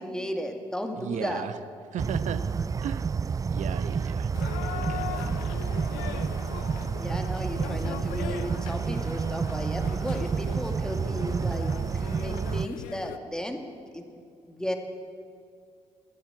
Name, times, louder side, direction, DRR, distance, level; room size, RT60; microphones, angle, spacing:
voice 1, 0.0-1.5 7.0-13.6 13.9-14.2 14.5-14.8, equal, 5° left, 5 dB, 2.3 m, -34 dB
voice 2, 1.0-1.5 1.9-2.4 2.8-3.1 3.5-4.3 4.8-5.3 5.7-5.9, right 9 dB, 65° right, 12 dB, 0.9 m, -35 dB
sound 1, 2.0-12.7, right 5 dB, 25° right, 0.3 m, -29 dB
sound 2, 4.3-13.2, left 12 dB, 80° left, 0.6 m, -40 dB
16.5 x 10.5 x 8.3 m, 2.3 s
hypercardioid pair, 55°, 14 cm